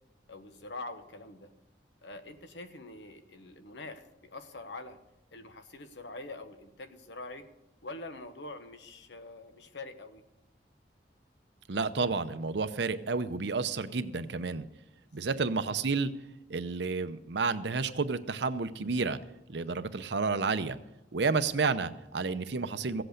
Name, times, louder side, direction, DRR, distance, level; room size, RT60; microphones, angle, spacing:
voice 1, 0.3-1.5 2.0-5.0 5.3-7.5 7.8-10.2 15.2-15.4, left 2 dB, 75° left, 8 dB, 1.2 m, -45 dB
voice 2, 11.7-14.6 15.1-16.1 16.5-19.2 19.5-20.8 21.1-23.0, right 4 dB, 75° right, 11 dB, 0.7 m, -30 dB
16.0 x 7.9 x 6.5 m, 0.94 s
head